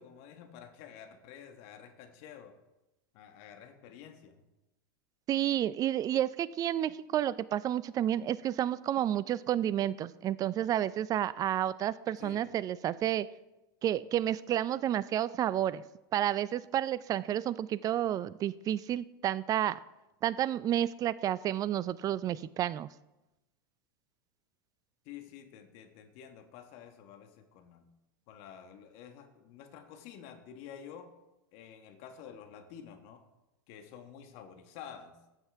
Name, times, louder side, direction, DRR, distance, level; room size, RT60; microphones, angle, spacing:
voice 1, 0.0-2.5 3.1-4.4 12.2-12.6 25.0-27.9 28.3-31.1 31.5-33.2 33.7-35.2, left 8 dB, 55° left, 6 dB, 1.5 m, -50 dB
voice 2, 5.3-13.3 13.8-15.8 16.1-19.8 20.2-22.9, right 11 dB, 30° right, 18 dB, 0.4 m, -30 dB
14.5 x 7.7 x 3.5 m, 0.97 s
hypercardioid pair, 95°, 12 cm